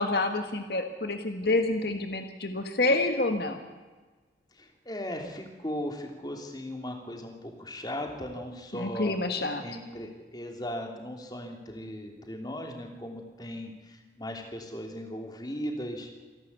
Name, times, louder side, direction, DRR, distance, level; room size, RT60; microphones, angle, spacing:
voice 1, 0.0-3.6 8.7-9.6, left 2 dB, 70° left, 6 dB, 1.6 m, -28 dB
voice 2, 4.5-9.2 9.6-16.1, equal, 25° left, 3 dB, 3.1 m, -37 dB
27.5 x 12.0 x 8.4 m, 1.3 s
head